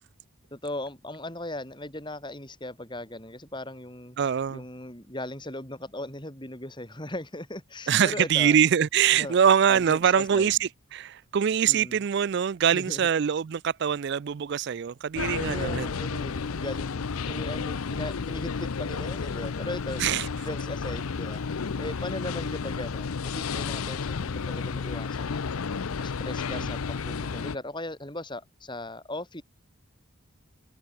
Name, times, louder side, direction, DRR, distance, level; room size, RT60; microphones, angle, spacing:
voice 1, 0.5-4.2 4.5-8.6 9.2-9.3 9.7-10.5 11.7-12.0 12.7-13.0 15.5-20.0 20.4-21.4 21.8-25.5 26.0-29.4, left 1 dB, 20° left, 4.3 m, -38 dB
voice 2, 4.2-4.6 7.9-15.9 20.0-20.3 26.5-26.7, right 8 dB, 50° right, 0.3 m, -24 dB
sound 1, 15.2-27.6, left 5 dB, 85° left, 0.6 m, -32 dB
head